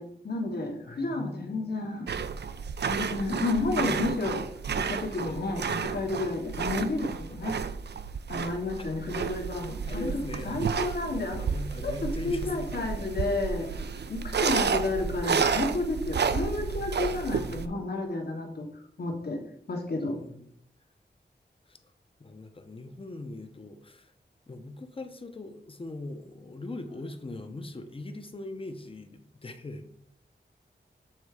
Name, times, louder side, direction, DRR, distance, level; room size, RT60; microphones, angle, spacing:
voice 1, 0.0-2.1 2.8-4.4 4.9-7.6 8.3-10.1 10.4-11.5 11.8-13.8 14.1-18.7 19.0-19.4 19.7-20.2, left 2 dB, 60° left, 2 dB, 1.3 m, -31 dB
voice 2, 0.9-1.7 3.6-4.1 8.7-8.9 9.9-10.6 11.4-13.1 20.1-20.4 21.7-21.8 22.2-24.1 24.5-29.9, left 2 dB, 30° left, 7 dB, 0.7 m, -41 dB
sound 1, 2.1-17.7, right 6 dB, 65° right, 0.4 m, -31 dB
7.3 x 3.8 x 4.8 m, 0.70 s
wide cardioid pair, 95°, 19 cm